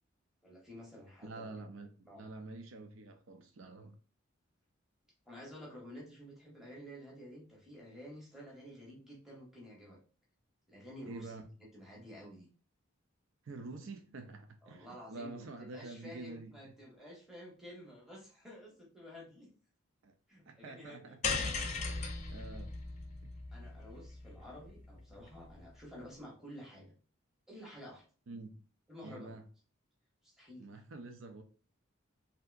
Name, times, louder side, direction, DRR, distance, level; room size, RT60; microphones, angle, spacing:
voice 1, 0.4-1.6 2.1-2.3 5.3-10.0 10.7-11.3 11.7-12.5 14.6-19.5 20.3-21.4 23.5-26.9 27.5-28.0 28.9-29.4 30.2-30.6, equal, ahead, 0.8 m, -51 dB
voice 2, 1.2-4.0 11.0-11.5 13.4-16.7 20.0-20.1 20.5-21.7 22.3-22.8 23.2-23.3 28.3-28.5 29.0-29.5 30.6-31.4, right 3 dB, 70° right, 0.5 m, -47 dB
sound 1, 21.2-25.6, left 4 dB, 35° left, 0.5 m, -38 dB
3.3 x 2.8 x 2.4 m
head